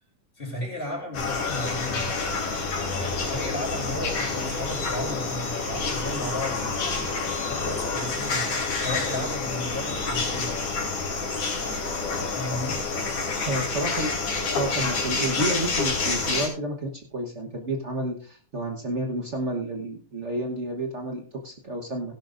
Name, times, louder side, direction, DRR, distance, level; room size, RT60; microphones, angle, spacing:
voice 1, 0.4-2.1 2.9-7.1 7.4-10.6 12.3-12.9, left 1 dB, 20° left, 0 dB, 3.3 m, -34 dB
sound 1, 1.1-16.5, left 4 dB, 80° left, 4.5 m, -28 dB
voice 2, 13.5-14.2 14.5-22.2, right 1 dB, 80° right, 2 dB, 0.6 m, -30 dB
16.5 x 11.5 x 2.6 m, 0.42 s
omnidirectional pair, 3.3 m